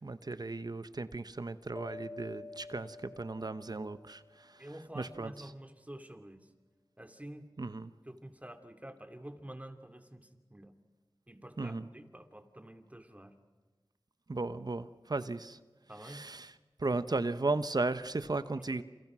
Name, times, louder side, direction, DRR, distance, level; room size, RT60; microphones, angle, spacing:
voice 1, 0.0-5.5 7.6-7.9 11.6-11.9 14.3-15.6 15.9-16.5 16.8-18.8, right 3 dB, 50° right, 12 dB, 1.0 m, -36 dB
sound 1, 1.8-4.7, left 2 dB, 30° left, 2.1 m, -49 dB
voice 2, 4.6-6.5 7.0-7.5 8.1-10.7 11.3-13.3 15.9-16.2 18.6-18.8, right 1 dB, 15° right, 7 dB, 2.6 m, -48 dB
28.5 x 28.5 x 6.3 m, 1.2 s
wide cardioid pair, 55°, 9 cm